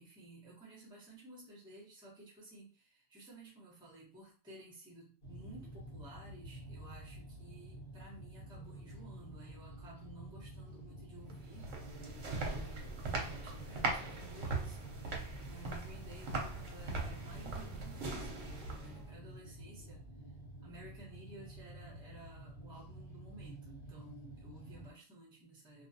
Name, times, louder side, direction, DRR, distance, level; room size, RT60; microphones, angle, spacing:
voice 1, 0.0-11.7 12.5-20.0 20.6-25.9, right 2 dB, 5° right, -5 dB, 0.8 m, -55 dB
sound 1, 5.2-24.9, right 1 dB, 45° left, 1.0 m, -50 dB
sound 2, 11.3-19.1, right 3 dB, 65° right, 0.9 m, -40 dB
2.4 x 2.3 x 2.6 m, 0.39 s
omnidirectional pair, 1.5 m